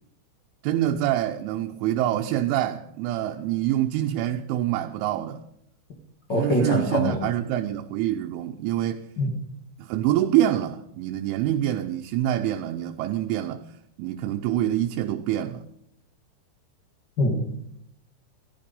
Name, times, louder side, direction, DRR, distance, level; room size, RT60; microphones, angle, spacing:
voice 1, 0.6-5.4 6.3-9.0 9.8-13.7 14.0-15.6, right 12 dB, 85° right, 3.2 m, -26 dB
voice 2, 6.3-7.2 9.2-9.3 17.2-17.5, left 1 dB, 55° left, 1.2 m, -23 dB
14.5 x 13.5 x 5.4 m
omnidirectional pair, 5.5 m